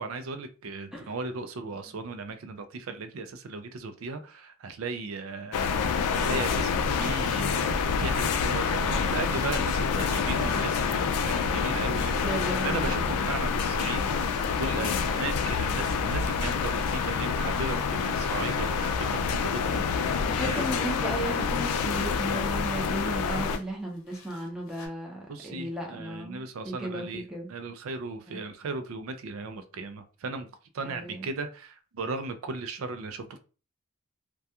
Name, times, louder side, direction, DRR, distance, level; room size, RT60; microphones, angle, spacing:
voice 1, 0.0-5.7 6.1-20.7 25.3-30.5 30.7-33.4, right 3 dB, 70° right, 0.4 m, -36 dB
sound 1, 5.5-23.6, left 5 dB, 90° left, 0.3 m, -27 dB
sound 2, 8.5-18.8 19.2-19.3 19.5-22.3 22.6-22.7 23.4-24.9, left 1 dB, 65° left, 0.7 m, -44 dB
voice 2, 12.2-13.2 14.7-14.9 20.3-27.5 28.3-28.4 30.8-31.3, right 1 dB, 5° right, 0.5 m, -35 dB
2.3 x 2.2 x 2.7 m
head